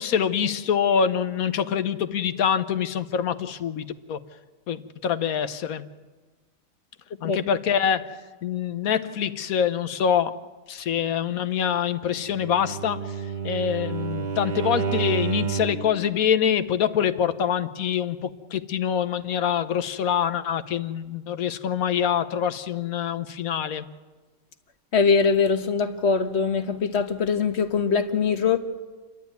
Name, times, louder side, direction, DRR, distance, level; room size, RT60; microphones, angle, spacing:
voice 1, 0.0-4.2 4.7-5.8 7.2-8.1 8.4-10.3 10.7-23.9, left 8 dB, 80° left, 1.4 m, -25 dB
Bowed string instrument, 12.3-15.9, right 6 dB, 35° right, 1.0 m, -29 dB
voice 2, 24.9-28.6, left 5 dB, 50° left, 1.5 m, -22 dB
29.0 x 12.0 x 9.3 m
omnidirectional pair, 1.5 m